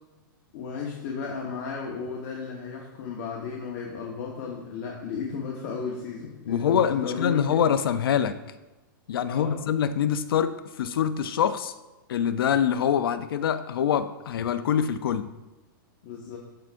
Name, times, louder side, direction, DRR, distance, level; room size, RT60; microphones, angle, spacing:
voice 1, 0.5-7.6 9.3-9.6 16.0-16.4, left 5 dB, 50° left, -2 dB, 1.2 m, -34 dB
voice 2, 6.5-8.4 9.1-11.7 12.1-15.3, left 8 dB, 80° left, 11 dB, 0.5 m, -25 dB
13.5 x 4.7 x 2.5 m, 1.1 s
hypercardioid pair, 145°, 12 cm